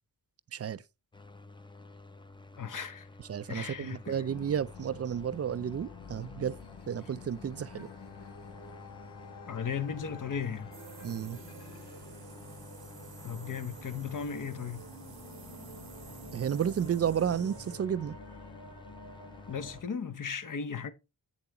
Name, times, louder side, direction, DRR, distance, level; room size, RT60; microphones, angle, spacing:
voice 1, 0.5-0.8 3.3-6.6 6.9-7.9 11.0-11.4 16.3-18.2, right 8 dB, 40° right, 0.4 m, -32 dB
sound 1, 1.1-19.9, left 2 dB, 10° left, 0.6 m, -51 dB
voice 2, 2.6-3.1 3.5-4.3 9.5-10.7 13.2-14.9 19.5-20.9, left 6 dB, 50° left, 0.8 m, -36 dB
sound 2, 4.3-19.8, left 5 dB, 80° left, 1.3 m, -50 dB
sound 3, 10.7-17.8, right 6 dB, 65° right, 0.9 m, -50 dB
8.0 x 7.0 x 3.0 m
wide cardioid pair, 90°, 40 cm